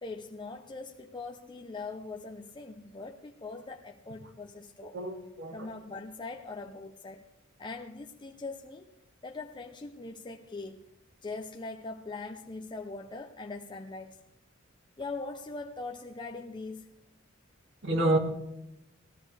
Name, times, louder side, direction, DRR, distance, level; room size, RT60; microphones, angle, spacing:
voice 1, 0.0-5.0 5.5-7.2 7.6-8.9 9.2-10.8 11.2-14.2 15.0-16.9, left 3 dB, 25° left, 2 dB, 0.6 m, -41 dB
voice 2, 4.9-5.7 17.8-18.2, right 1 dB, 65° right, 3 dB, 1.9 m, -28 dB
19.0 x 14.5 x 3.3 m, 0.87 s
head